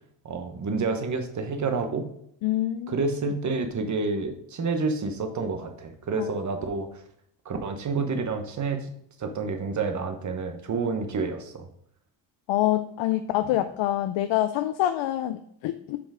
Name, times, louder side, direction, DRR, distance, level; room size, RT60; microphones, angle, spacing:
voice 1, 0.2-2.1 2.9-6.9 7.4-8.9 9.2-11.7, right 4 dB, 35° right, 6 dB, 1.2 m, -29 dB
voice 2, 2.4-3.0 6.2-6.3 12.5-16.0, left 13 dB, 65° left, 9 dB, 0.6 m, -26 dB
5.7 x 5.1 x 5.0 m, 0.68 s
cardioid pair, 120°, 49 cm